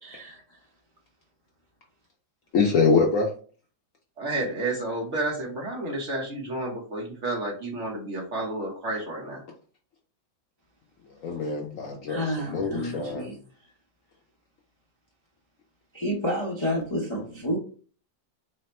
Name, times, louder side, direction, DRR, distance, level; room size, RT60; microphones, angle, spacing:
voice 1, 0.0-0.4 12.1-13.4 15.9-17.6, equal, 25° left, -3 dB, 0.6 m, -30 dB
voice 2, 2.5-3.3 11.2-13.2, left 4 dB, 65° left, 0 dB, 0.8 m, -24 dB
voice 3, 4.2-9.4, right 2 dB, 50° right, -1 dB, 1.1 m, -31 dB
4.1 x 2.1 x 4.1 m, 0.41 s
omnidirectional pair, 1.9 m